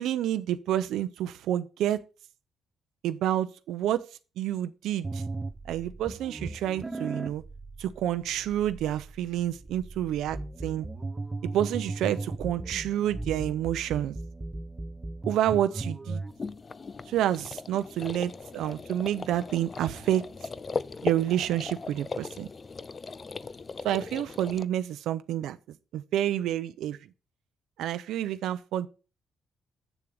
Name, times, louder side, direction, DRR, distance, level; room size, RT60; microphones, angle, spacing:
voice 1, 0.0-2.0 3.0-4.0 4.4-5.2 5.7-7.4 7.8-10.9 11.5-14.1 15.3-16.2 17.1-20.2 21.0-22.5 23.8-25.6 25.9-27.0 27.8-28.9, right 11 dB, 85° right, 0.6 m, -29 dB
sound 1, 5.0-16.3, right 2 dB, 15° right, 0.7 m, -37 dB
sound 2, 16.3-24.6, left 4 dB, 25° left, 0.4 m, -38 dB
8.3 x 6.9 x 5.0 m
cardioid pair, 140°, 0 cm